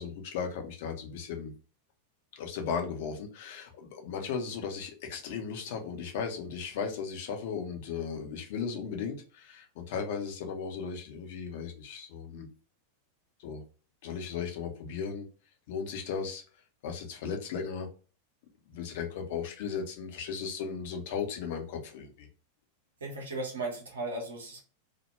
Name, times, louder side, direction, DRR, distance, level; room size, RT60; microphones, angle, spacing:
voice 1, 0.0-1.5 2.3-12.5 13.4-13.6 14.0-15.3 15.7-16.4 16.8-17.9 18.7-22.3, left 6 dB, 50° left, 3 dB, 0.5 m, -36 dB
voice 2, 23.0-24.6, right 2 dB, 65° right, 0 dB, 0.6 m, -36 dB
2.1 x 2.0 x 3.0 m, 0.37 s
figure-of-eight pair, 90°, 0 cm